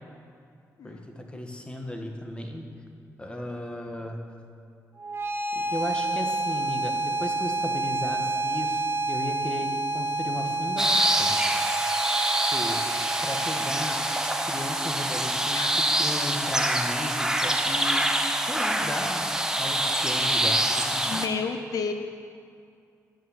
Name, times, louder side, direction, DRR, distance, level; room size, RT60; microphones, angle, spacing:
voice 1, 0.8-2.7 3.2-4.2 5.5-11.4 12.3-12.8 13.2-14.0 14.5-18.1 18.4-19.3 19.6-21.2, left 1 dB, 15° left, 3 dB, 1.4 m, -35 dB
sound 1, 5.0-16.0, right 2 dB, 40° right, 1.1 m, -30 dB
sound 2, 10.8-21.3, right 1 dB, 10° right, 0.8 m, -26 dB
voice 2, 21.1-21.9, left 5 dB, 75° left, 6 dB, 0.6 m, -31 dB
9.0 x 6.8 x 7.2 m, 2.4 s
cardioid pair, 65°, 6 cm